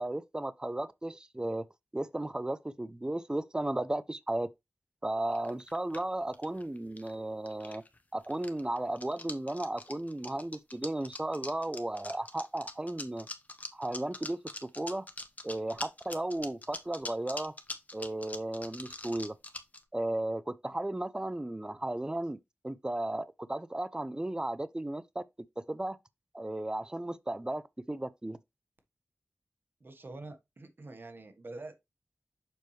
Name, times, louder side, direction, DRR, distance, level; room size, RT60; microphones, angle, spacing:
voice 1, 0.0-1.7 1.9-4.5 5.0-7.8 8.1-13.3 13.7-15.1 15.4-17.5 17.9-19.4 19.9-22.4 22.6-25.2 25.6-26.0 26.3-28.4, right 1 dB, 20° right, 0.6 m, -35 dB
sound 1, 5.3-7.1 7.5-8.0 8.2-19.8, left 2 dB, 35° left, 1.3 m, -43 dB
voice 2, 29.8-31.8, right 2 dB, 60° right, 1.5 m, -46 dB
7.0 x 4.5 x 3.3 m
cardioid pair, 40°, 4 cm